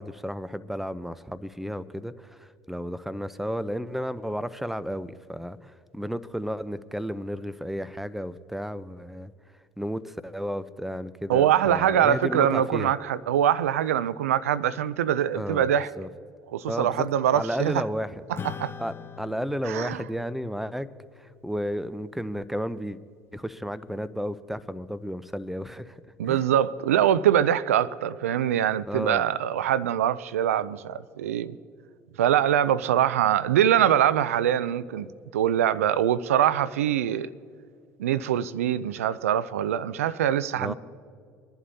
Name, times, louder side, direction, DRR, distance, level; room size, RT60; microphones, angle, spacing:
voice 1, 0.0-9.3 9.8-12.9 15.3-15.7 16.0-16.1 16.7-18.2 18.8-20.9 21.2-23.0 23.3-26.0 26.2-26.4 28.9-29.3 40.6-40.7, equal, 5° right, 0.6 m, -33 dB
voice 2, 11.3-15.9 16.5-17.8 18.3-18.7 19.7-20.0 26.2-31.6 32.2-35.1 35.3-37.3 38.0-40.7, right 10 dB, 90° right, 0.4 m, -23 dB
Acoustic guitar / Strum, 18.3-23.1, left 7 dB, 30° left, 0.7 m, -44 dB
22.5 x 11.0 x 2.7 m
hypercardioid pair, 70°, 7 cm